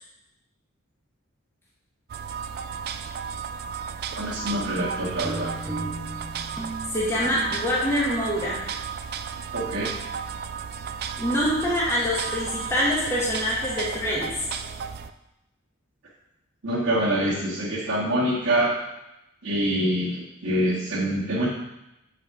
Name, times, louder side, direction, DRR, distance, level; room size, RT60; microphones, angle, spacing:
sound 1, 2.1-15.1, right 6 dB, 45° right, 0.3 m, -34 dB
voice 1, 4.1-5.5 9.5-9.9 16.6-18.7 19.4-21.5, right 1 dB, 70° right, -10 dB, 1.6 m, -25 dB
sound 2, 4.6-7.7, right 1 dB, 5° right, 0.9 m, -36 dB
voice 2, 6.9-8.6 11.2-14.4, equal, 10° left, -5 dB, 1.2 m, -25 dB
7.4 x 4.1 x 4.7 m, 0.91 s
head